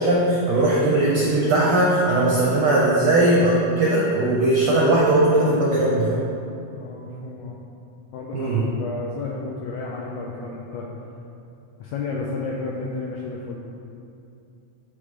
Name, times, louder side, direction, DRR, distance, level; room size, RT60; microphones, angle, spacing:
voice 1, 0.0-6.3 8.3-8.6, right 2 dB, 80° right, -6 dB, 1.2 m, -19 dB
voice 2, 6.7-7.6 8.1-8.5 8.8-10.9 11.8-13.6, left 3 dB, 85° left, -2 dB, 1.5 m, -32 dB
9.7 x 3.3 x 3.6 m, 2.6 s
omnidirectional pair, 3.6 m